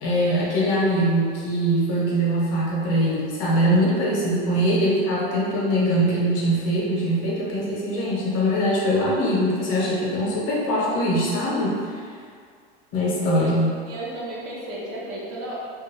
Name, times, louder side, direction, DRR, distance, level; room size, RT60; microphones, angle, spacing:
voice 1, 0.0-12.0 12.9-13.7, equal, 60° left, -6 dB, 1.1 m, -22 dB
voice 2, 13.9-15.6, right 1 dB, 60° right, -5 dB, 0.9 m, -33 dB
2.6 x 2.5 x 2.9 m, 2.1 s
supercardioid pair, 115°, 30 cm